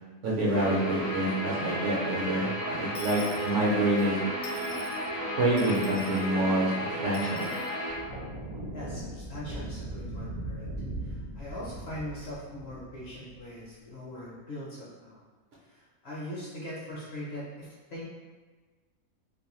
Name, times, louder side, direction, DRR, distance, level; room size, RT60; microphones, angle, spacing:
voice 1, 0.2-4.2 5.4-6.7 7.0-7.5, right 1 dB, 65° right, -5 dB, 0.9 m, -27 dB
Guitar, 0.5-7.9, equal, 15° left, 0.5 m, -33 dB
Dishes pots and pans / Coin (dropping), 2.9-4.1 4.4-5.0 5.6-6.3 7.1-7.7, left 3 dB, 80° left, 0.3 m, -46 dB
sound 1, 7.9-13.5, right 1 dB, 45° right, 0.6 m, -39 dB
voice 2, 8.7-10.7 11.0-15.2 15.6-18.0, left 1 dB, 55° left, -6 dB, 0.8 m, -41 dB
2.5 x 2.2 x 3.0 m, 1.3 s
omnidirectional pair, 1.5 m